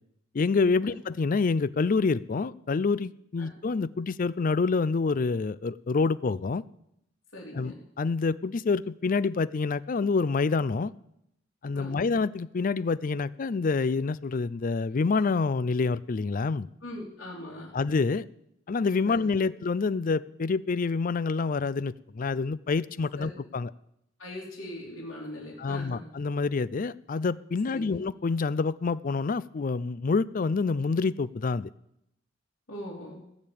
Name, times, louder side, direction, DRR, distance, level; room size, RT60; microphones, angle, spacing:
voice 1, 0.3-6.6 7.5-10.9 11.6-16.7 17.7-18.3 18.7-23.7 25.6-31.7, left 4 dB, 40° left, 18 dB, 0.4 m, -27 dB
voice 2, 7.3-7.8 11.7-12.0 16.8-17.7 19.0-19.5 23.2-23.3 24.2-26.0 27.7-28.0 32.7-33.2, left 1 dB, 70° left, -6 dB, 3.0 m, -41 dB
16.0 x 6.7 x 8.7 m, 0.79 s
head